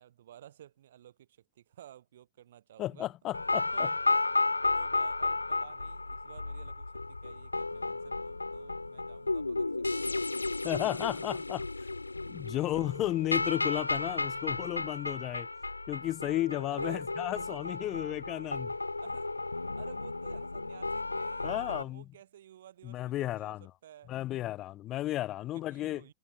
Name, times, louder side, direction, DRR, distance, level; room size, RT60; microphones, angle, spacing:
voice 1, 0.0-3.1 3.7-4.2 4.7-10.3 16.7-17.1 19.0-24.1 25.5-26.1, right 11 dB, 60° right, 7.0 m, -54 dB
voice 2, 2.8-3.7 10.6-11.7 12.3-15.5 15.9-18.7 21.4-22.0 22.8-23.7 24.1-26.0, left 14 dB, 35° left, 1.9 m, -33 dB
sound 1, 3.3-21.8, left 3 dB, 80° left, 1.4 m, -33 dB
figure-of-eight pair, 90°, 0 cm